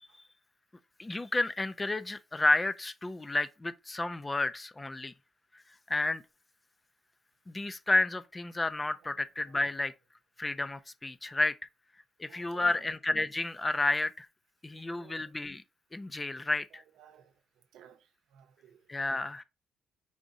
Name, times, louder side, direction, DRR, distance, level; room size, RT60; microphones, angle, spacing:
voice 1, 1.0-5.1 5.9-6.2 7.5-9.9 10.4-11.6 12.2-14.3 14.6-15.6 15.9-16.8 18.9-19.4, left 2 dB, 20° left, 0.4 m, -31 dB
voice 2, 12.2-12.8 14.7-15.3 16.7-17.3 17.7-18.0 18.3-18.8, right 9 dB, 85° right, 0.7 m, -55 dB
4.9 x 2.5 x 4.0 m
cardioid pair, 90°, 0 cm